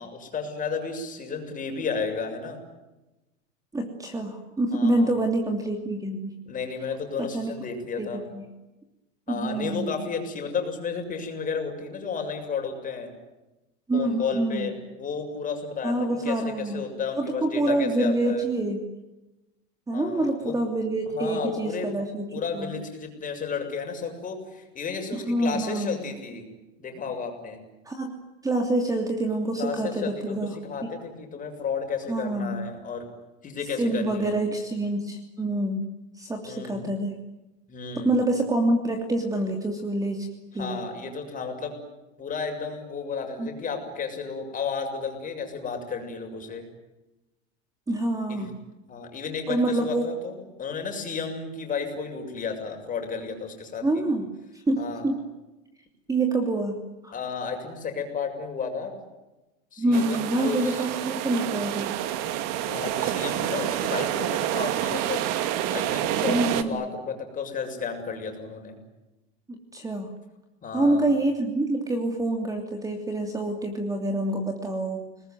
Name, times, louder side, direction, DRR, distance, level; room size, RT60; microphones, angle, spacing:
voice 1, 0.0-2.6 4.7-5.1 6.5-8.2 9.3-13.1 13.9-18.4 19.9-20.5 21.1-21.9 22.3-26.5 26.8-27.6 29.6-33.0 33.4-34.4 36.4-36.9 37.7-38.2 40.5-41.8 42.2-46.7 48.3-48.5 48.9-54.0 54.8-55.1 57.1-58.9 59.7-60.9 62.6-68.8 70.6-71.1, left 5 dB, 25° left, 4 dB, 7.1 m, -33 dB
voice 2, 3.7-6.3 7.2-7.5 8.0-8.4 9.3-9.9 13.9-14.7 15.8-16.8 17.2-18.8 19.9-22.3 22.5-22.7 25.1-26.0 27.8-28.1 28.4-30.6 32.1-32.6 33.8-35.8 36.1-37.1 38.0-40.3 40.5-40.8 43.4-43.5 47.9-48.6 49.5-50.1 53.8-55.2 56.1-56.8 57.0-57.1 59.8-61.9 66.3-66.9 69.5-70.1 70.7-75.0, right 2 dB, 10° right, 4 dB, 3.0 m, -26 dB
sound 1, 59.9-66.6, right 12 dB, 50° right, 2.3 m, -28 dB
30.0 x 20.5 x 9.4 m, 1.0 s
supercardioid pair, 135°, 32 cm